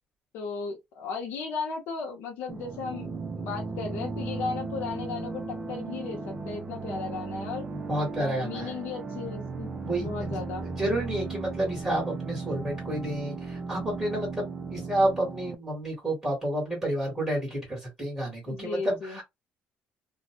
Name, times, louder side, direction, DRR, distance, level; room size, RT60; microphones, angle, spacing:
voice 1, 0.3-7.6 8.2-9.7 10.0-10.6 18.5-19.2, left 5 dB, 85° left, 0.8 m, -35 dB
sound 1, 2.5-15.6, right 4 dB, 25° right, 0.4 m, -36 dB
voice 2, 7.9-8.7 9.8-10.3 10.6-19.2, right 1 dB, 5° right, 1.4 m, -30 dB
2.5 x 2.3 x 2.8 m
cardioid pair, 150°, 3 cm